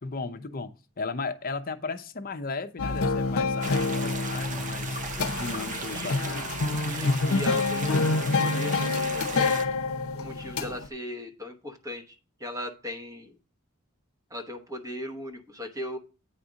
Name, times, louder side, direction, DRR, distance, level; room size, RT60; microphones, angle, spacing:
voice 1, 0.0-5.0 5.4-6.5, left 4 dB, 40° left, 8 dB, 0.7 m, -35 dB
sound 1, 2.8-10.9, left 3 dB, 75° left, 0.7 m, -27 dB
sound 2, 3.6-9.7, right 3 dB, 35° right, 0.7 m, -36 dB
voice 2, 5.7-6.5 6.8-9.6 10.1-12.1 12.4-13.3 14.3-16.0, left 1 dB, 15° right, 3 dB, 1.0 m, -38 dB
8.9 x 4.1 x 5.1 m, 0.34 s
head